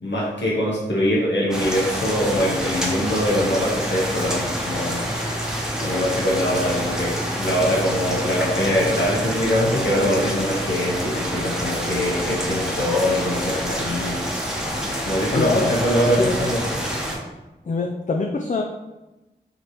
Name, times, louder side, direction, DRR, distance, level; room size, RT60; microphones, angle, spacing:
voice 1, 0.0-5.0 5.8-14.2 15.0-16.6, equal, 80° left, -4 dB, 1.0 m, -23 dB
sound 1, 1.5-17.2, equal, 5° right, 0.9 m, -27 dB
voice 2, 15.3-15.7 16.2-16.4 17.7-18.6, left 3 dB, 45° left, 2 dB, 0.4 m, -23 dB
5.0 x 2.9 x 3.1 m, 1.0 s
wide cardioid pair, 65°, 18 cm